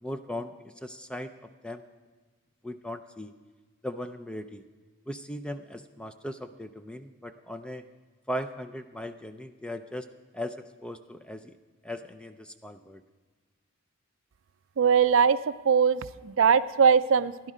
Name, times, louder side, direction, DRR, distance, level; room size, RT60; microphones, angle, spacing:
voice 1, 0.0-1.9 2.6-3.3 3.8-4.6 5.1-7.8 8.3-10.1 10.3-11.5 11.8-13.0, left 1 dB, 5° left, 9 dB, 0.4 m, -38 dB
voice 2, 14.8-15.4 15.7-17.5, right 6 dB, 65° right, 14 dB, 0.4 m, -21 dB
16.5 x 11.0 x 5.0 m, 1.4 s
head